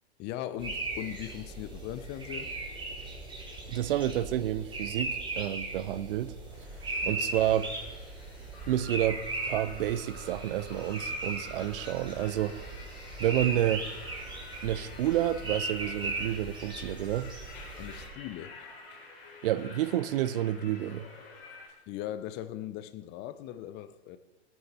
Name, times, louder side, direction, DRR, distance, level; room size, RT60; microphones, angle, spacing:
voice 1, 0.2-2.5 7.0-7.2 17.8-18.6 21.9-24.2, left 12 dB, 30° left, 0.7 m, -39 dB
sound 1, 0.6-18.1, right 2 dB, 15° right, 4.3 m, -38 dB
voice 2, 3.7-6.3 7.1-7.7 8.7-12.7 13.2-13.9 14.6-17.3 19.4-21.1, right 12 dB, 55° right, 0.7 m, -29 dB
sound 2, 6.5-21.7, left 3 dB, 55° left, 4.3 m, -49 dB
17.0 x 9.3 x 4.3 m
hypercardioid pair, 110°, 33 cm